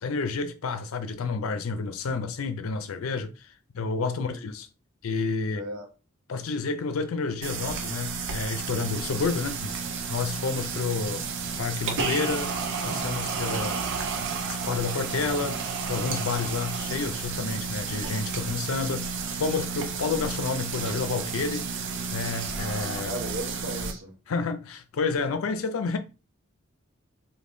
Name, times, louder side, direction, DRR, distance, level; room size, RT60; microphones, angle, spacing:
voice 1, 0.0-3.4 3.7-4.7 5.0-5.7 6.3-9.7 10.1-11.2 11.6-12.5 12.8-13.8 14.5-15.6 15.9-21.7 22.1-23.1 24.3-26.0, left 4 dB, 80° left, 0.5 m, -30 dB
voice 2, 4.0-4.4 5.5-5.8 13.5-13.8 23.0-24.1, right 1 dB, 80° right, 1.2 m, -37 dB
sound 1, 7.4-23.9, right 5 dB, 60° right, 0.5 m, -32 dB
2.6 x 2.6 x 3.5 m
head